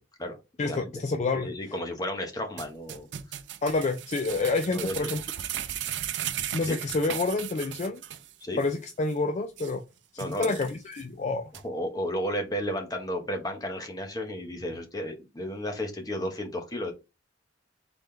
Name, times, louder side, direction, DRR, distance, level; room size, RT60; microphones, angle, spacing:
voice 1, 0.0-0.9 1.4-3.1 4.6-5.1 6.7-6.8 8.4-8.6 10.2-10.6 11.5-16.9, equal, 20° left, 1.1 m, -33 dB
voice 2, 0.6-1.5 3.6-5.2 6.5-8.0 8.6-9.8 10.2-11.5, left 3 dB, 40° left, 0.4 m, -28 dB
sound 1, 2.6-8.3 8.6-8.7 9.1-9.2 9.6-9.7 10.2-11.0 11.5-11.6, right 11 dB, 75° right, 0.5 m, -36 dB
4.2 x 3.6 x 3.3 m
head